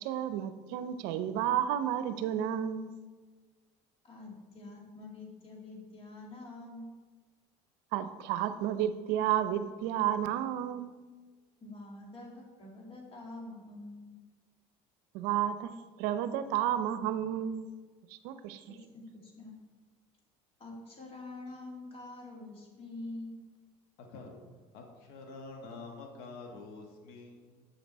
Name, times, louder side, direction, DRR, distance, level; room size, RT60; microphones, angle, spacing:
voice 1, 0.0-2.9 7.9-10.9 15.1-15.7 16.0-17.7 18.2-18.6, right 10 dB, 80° right, 11 dB, 0.6 m, -31 dB
voice 2, 4.0-6.9 11.6-14.2 18.7-19.5 20.6-23.4, left 2 dB, 35° left, -1 dB, 2.1 m, -46 dB
voice 3, 24.0-24.4 24.7-27.7, left 3 dB, 75° left, 2 dB, 1.3 m, -47 dB
7.2 x 6.0 x 4.1 m, 1.4 s
supercardioid pair, 105°, 16 cm